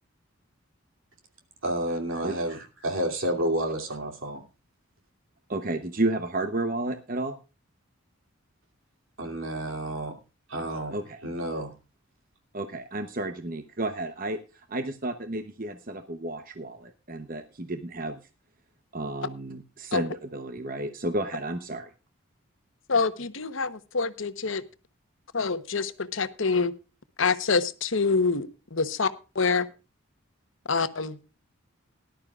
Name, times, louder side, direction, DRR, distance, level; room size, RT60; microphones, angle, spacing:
voice 1, 1.6-4.4 9.2-10.1 10.5-10.9 11.2-11.7, right 1 dB, 70° right, 2 dB, 2.8 m, -30 dB
voice 2, 2.2-2.6 5.5-7.4 10.9-11.2 12.5-18.2 18.9-21.9, right 2 dB, 40° right, 8 dB, 0.8 m, -32 dB
voice 3, 22.9-24.6 25.3-26.7 27.2-29.7 30.7-31.2, left 4 dB, 70° left, 12 dB, 1.0 m, -26 dB
18.5 x 11.5 x 2.4 m, 0.32 s
head